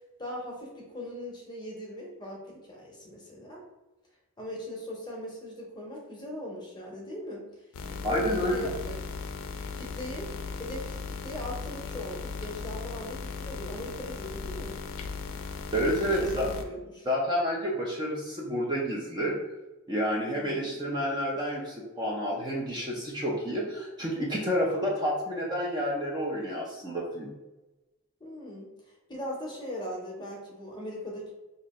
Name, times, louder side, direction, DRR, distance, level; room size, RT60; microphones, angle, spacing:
voice 1, 0.2-3.6 4.4-7.5 7.9-8.9 9.7-10.3 10.6-11.0 11.2-14.8 15.8-17.1 20.3-20.7 28.2-28.7 29.1-31.3, equal, 20° left, -2 dB, 0.7 m, -39 dB
sound 1, 7.7-16.6, left 5 dB, 85° left, 0.4 m, -37 dB
voice 2, 8.0-8.7 15.7-16.5 17.1-19.4 19.9-27.3, equal, 20° right, -2 dB, 0.5 m, -29 dB
2.7 x 2.5 x 4.1 m, 1.1 s
head